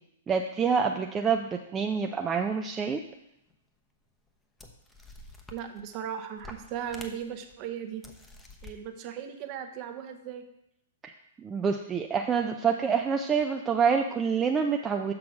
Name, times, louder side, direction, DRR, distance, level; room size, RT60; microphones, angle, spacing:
voice 1, 0.3-3.0 11.0-11.1 11.4-15.1, right 6 dB, 20° right, 3 dB, 0.5 m, -27 dB
sound 1, 3.5-3.6 4.3-4.4 4.6-6.0 6.4-7.5 8.0-8.7, left 2 dB, 10° left, 0.9 m, -48 dB
voice 2, 5.5-8.0 8.6-10.4, right 9 dB, 40° right, 7 dB, 0.9 m, -37 dB
6.2 x 6.0 x 4.8 m, 0.80 s
hypercardioid pair, 115°, 0 cm